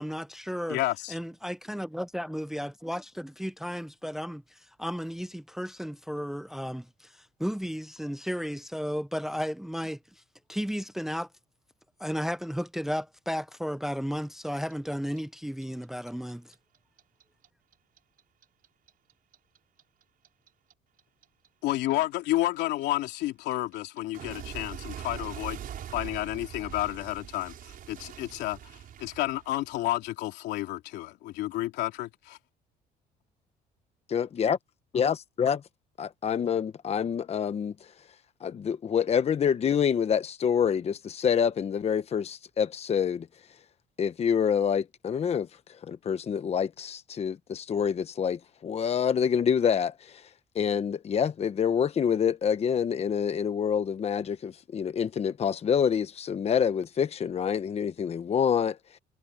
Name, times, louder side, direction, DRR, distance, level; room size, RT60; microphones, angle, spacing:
voice 1, 0.0-0.8 1.1-10.0 10.5-11.3 12.0-16.5, equal, ahead, 0.6 m, -34 dB
voice 2, 0.7-1.1 21.6-25.6 25.9-32.4, left 16 dB, 85° left, 3.0 m, -31 dB
Clock, 14.5-17.5 17.7-20.7 21.0-29.8, right 10 dB, 60° right, 5.4 m, -42 dB
voice 3, 34.1-34.6 34.9-35.6 36.0-37.7 38.4-43.3 44.0-45.5 45.8-50.3 50.5-59.0, left 7 dB, 40° left, 1.0 m, -27 dB
cardioid pair, 110°, 17 cm